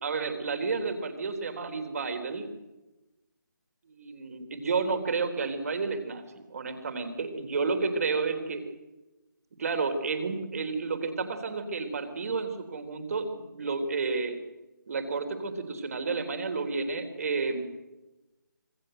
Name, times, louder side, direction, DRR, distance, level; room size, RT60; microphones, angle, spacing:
voice 1, 0.0-2.5 4.0-6.2 6.5-8.6 9.6-14.4 14.9-17.6, right 4 dB, 45° right, 7 dB, 3.8 m, -31 dB
26.0 x 18.0 x 7.9 m, 1.0 s
figure-of-eight pair, 155°, 11 cm